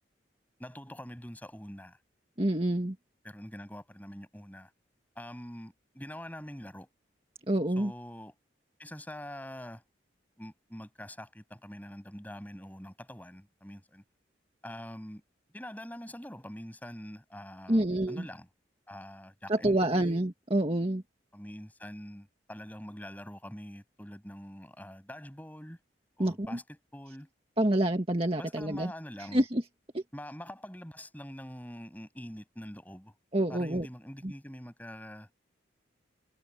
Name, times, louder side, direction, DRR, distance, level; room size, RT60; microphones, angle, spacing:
voice 1, 0.6-2.0 3.2-4.7 5.2-6.9 7.8-8.4 8.8-9.8 10.4-14.0 14.6-15.2 15.5-18.5 18.9-20.2 21.3-25.8 26.2-27.3 28.4-29.4 30.1-33.1 33.5-35.3, equal, 10° left, 7.1 m, -44 dB
voice 2, 2.4-3.0 7.5-7.9 17.7-18.3 19.5-21.0 26.2-26.5 27.6-28.9 29.3-29.6 29.9-30.0 33.3-33.9 34.2-34.3, right 1 dB, 30° right, 1.9 m, -27 dB
head